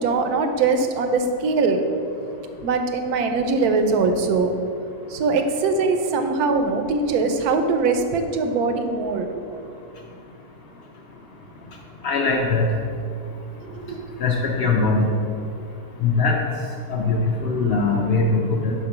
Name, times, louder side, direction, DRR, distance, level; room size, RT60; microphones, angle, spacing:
voice 1, 0.0-1.8 2.6-4.5 5.1-9.3 13.7-14.0, right 4 dB, 85° right, 6 dB, 1.1 m, -22 dB
voice 2, 12.0-12.7 14.2-15.1 16.0-16.4 16.9-18.7, left 3 dB, 65° left, -2 dB, 0.6 m, -21 dB
5.1 x 4.3 x 5.8 m, 2.5 s
omnidirectional pair, 1.6 m